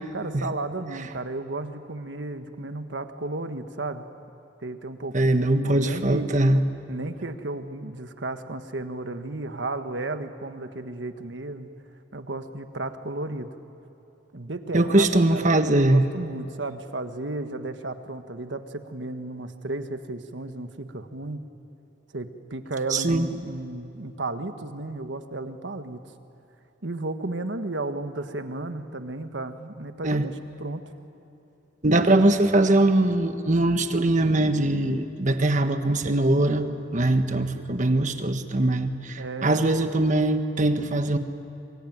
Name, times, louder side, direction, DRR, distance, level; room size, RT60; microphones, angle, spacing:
voice 1, 0.1-4.0 4.6-5.3 5.6-6.3 6.9-11.7 12.1-13.5 14.3-21.4 22.1-26.0 26.8-30.8 39.2-39.6, right 2 dB, 80° right, 8 dB, 1.5 m, -34 dB
voice 2, 5.1-6.6 14.7-16.1 22.9-23.3 30.0-30.2 31.8-36.7 36.9-41.2, right 2 dB, 45° right, 8 dB, 1.4 m, -21 dB
25.5 x 22.0 x 9.4 m, 3.0 s
head